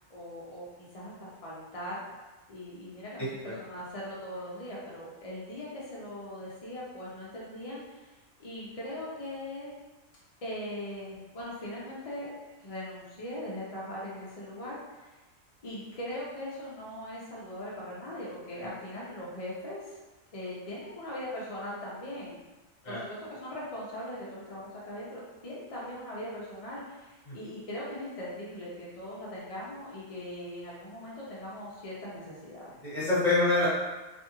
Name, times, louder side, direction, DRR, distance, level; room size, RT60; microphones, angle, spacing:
voice 1, 0.1-0.7 0.9-2.0 2.5-8.0 8.4-9.8 10.4-12.3 12.6-15.1 15.6-20.0 20.3-22.4 22.9-32.7, left 1 dB, 60° left, -7 dB, 0.3 m, -40 dB
voice 2, 3.2-3.5 22.8-23.0 27.3-27.4 32.8-33.7, left 2 dB, 30° left, -9 dB, 1.1 m, -26 dB
2.5 x 2.3 x 2.9 m, 1.1 s
omnidirectional pair, 1.4 m